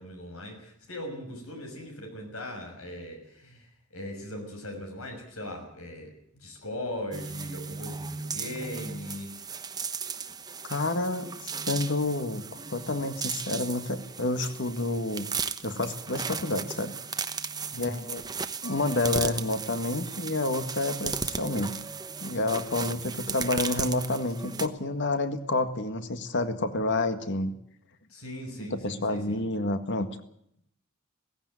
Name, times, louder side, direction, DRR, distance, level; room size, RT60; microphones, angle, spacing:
voice 1, 0.0-9.3 17.7-18.0 22.9-23.0 28.1-29.4, left 1 dB, 90° left, 3 dB, 6.3 m, -39 dB
sound 1, 7.1-24.7, right 5 dB, 20° right, 1.0 m, -36 dB
voice 2, 10.7-11.3 11.7-12.4 12.7-15.3 15.6-17.0 17.8-18.2 18.6-21.7 22.2-27.6 28.6-30.1, left 2 dB, 60° left, 9 dB, 1.8 m, -29 dB
17.5 x 16.0 x 9.5 m, 0.72 s
head